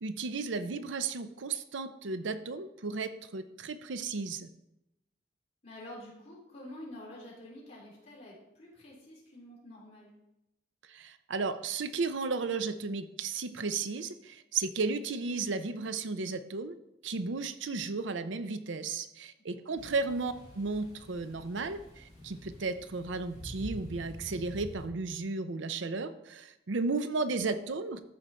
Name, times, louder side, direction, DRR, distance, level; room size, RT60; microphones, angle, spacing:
voice 1, 0.0-4.5 10.9-16.7 17.0-28.0, right 4 dB, 75° right, 11 dB, 0.6 m, -34 dB
voice 2, 5.6-10.1 19.5-20.1, left 1 dB, 35° left, -6 dB, 3.7 m, -48 dB
sound 1, 19.8-24.8, left 1 dB, 20° right, 3.1 m, -47 dB
13.0 x 5.0 x 4.4 m, 0.88 s
head